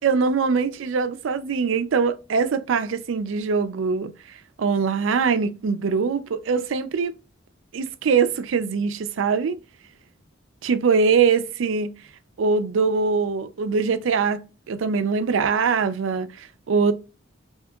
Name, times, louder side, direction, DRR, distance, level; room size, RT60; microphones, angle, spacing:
voice 1, 0.0-4.1 4.6-7.1 7.7-9.6 10.6-11.9 12.4-14.4 14.7-16.9, right 5 dB, 80° right, 0.4 m, -22 dB
3.7 x 2.8 x 2.3 m
head